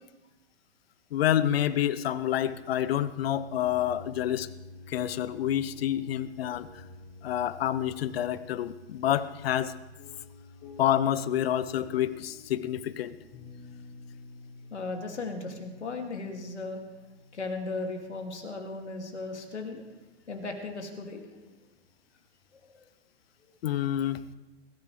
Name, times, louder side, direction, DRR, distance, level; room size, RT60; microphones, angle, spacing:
voice 1, 1.1-4.5 4.9-6.7 7.2-9.7 10.8-13.2 23.6-24.3, left 11 dB, 60° left, 15 dB, 0.9 m, -28 dB
sound 1, 1.9-19.8, left 3 dB, 40° left, 5.1 m, -50 dB
voice 2, 14.7-16.8 17.3-19.8 20.3-21.2 22.6-22.7, left 3 dB, 85° left, 3 dB, 2.6 m, -36 dB
22.0 x 14.5 x 3.3 m, 1.1 s
hypercardioid pair, 115°, 33 cm